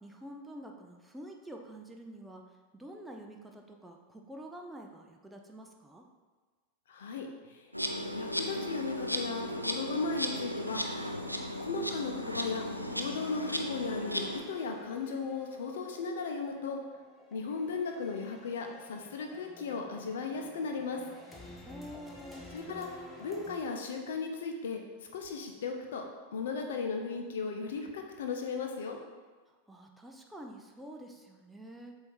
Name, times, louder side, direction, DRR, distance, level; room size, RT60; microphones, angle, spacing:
voice 1, 0.0-6.1 21.6-22.5 29.5-32.0, equal, 5° right, 2 dB, 0.6 m, -48 dB
voice 2, 6.9-7.7 8.1-10.8 11.6-12.7 12.9-16.8 17.3-21.0 22.5-24.8 25.1-26.0 26.3-29.0, left 4 dB, 60° left, 3 dB, 0.8 m, -36 dB
Insect, 7.7-14.4, equal, 90° left, 0.5 m, -35 dB
sound 1, 10.1-23.6, left 1 dB, 15° left, 1.0 m, -53 dB
7.7 x 2.8 x 4.7 m, 1.4 s
figure-of-eight pair, 90°, 0 cm